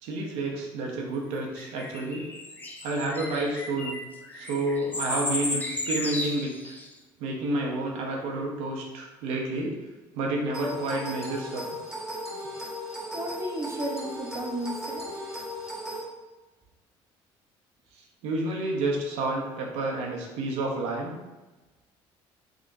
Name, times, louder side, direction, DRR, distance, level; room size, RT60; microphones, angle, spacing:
voice 1, 0.0-2.3 2.8-4.0 4.3-6.7 7.2-9.8 10.1-11.7 18.2-21.2, right 2 dB, 85° right, -1 dB, 0.7 m, -30 dB
sound 1, 1.6-6.9, left 2 dB, 15° left, 0.5 m, -34 dB
sound 2, 10.5-16.0, equal, 5° right, 1.1 m, -36 dB
voice 2, 13.1-15.3, right 1 dB, 25° right, 1 dB, 0.6 m, -34 dB
3.6 x 2.9 x 2.6 m, 1.1 s
supercardioid pair, 90°, 11 cm